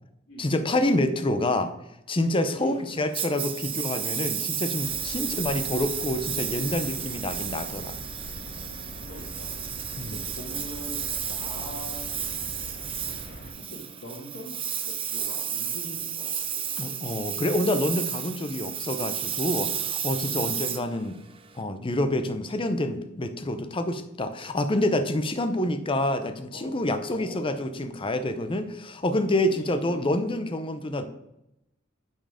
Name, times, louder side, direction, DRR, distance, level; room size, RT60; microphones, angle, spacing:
voice 1, 0.4-1.7 2.1-7.9 10.0-10.2 16.8-21.2 21.5-31.1, left 1 dB, 25° left, 9 dB, 0.7 m, -27 dB
voice 2, 2.5-2.9 5.2-5.4 9.1-9.5 10.3-12.3 13.6-14.6 14.8-16.7 20.4-20.7 26.5-26.8 27.1-27.5 29.4-30.1, equal, 80° left, -6 dB, 1.9 m, -43 dB
Engine, 3.1-21.6, right 8 dB, 25° right, 0.6 m, -32 dB
sound 1, 4.8-13.5, equal, 55° left, 1.9 m, -42 dB
9.0 x 4.5 x 5.0 m, 0.85 s
head